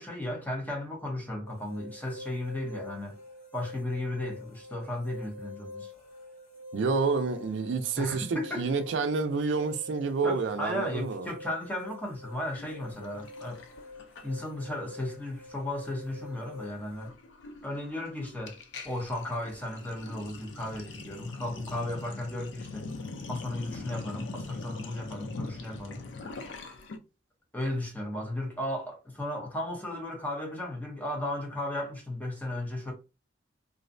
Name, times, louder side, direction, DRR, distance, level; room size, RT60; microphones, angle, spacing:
voice 1, 0.0-3.2 3.5-5.9 8.0-8.7 10.2-13.6 14.2-17.1 17.6-18.6 18.8-22.9 23.3-26.0 27.5-32.9, left 1 dB, 10° left, 0.6 m, -35 dB
sound 1, 1.5-17.1, left 2 dB, 50° left, 0.8 m, -46 dB
voice 2, 6.7-11.3, right 4 dB, 90° right, 0.4 m, -29 dB
Sink (filling or washing), 12.5-14.7 15.0-15.3 15.6-27.0, left 3 dB, 85° left, 0.4 m, -43 dB
2.5 x 2.0 x 2.5 m
head